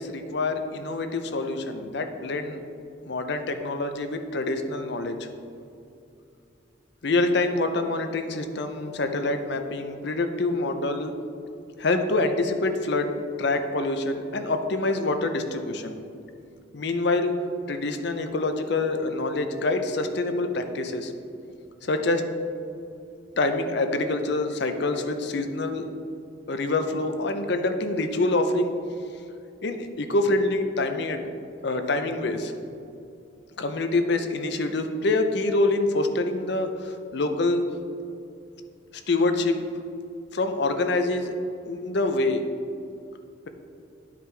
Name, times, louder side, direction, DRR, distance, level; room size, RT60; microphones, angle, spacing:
voice 1, 0.0-2.6 3.1-5.3 7.0-11.1 11.8-13.1 13.4-16.0 16.7-17.3 17.7-21.1 21.8-22.2 23.4-25.8 26.5-28.7 29.6-31.2 31.6-32.5 33.6-37.6 38.9-39.6 40.3-41.3 41.6-42.4, left 2 dB, 55° left, 7 dB, 0.5 m, -26 dB
10.0 x 5.0 x 3.3 m, 2.6 s
head